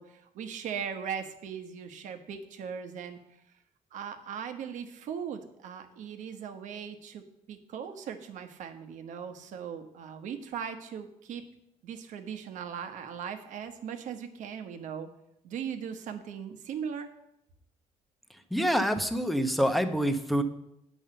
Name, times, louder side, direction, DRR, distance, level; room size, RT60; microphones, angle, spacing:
voice 1, 0.0-3.2 3.9-7.2 7.5-11.5 11.8-15.1 15.4-17.1, right 7 dB, 70° right, 7 dB, 1.1 m, -39 dB
voice 2, 18.5-20.4, equal, ahead, 8 dB, 0.8 m, -26 dB
8.3 x 5.5 x 7.7 m, 0.80 s
cardioid pair, 115°, 13 cm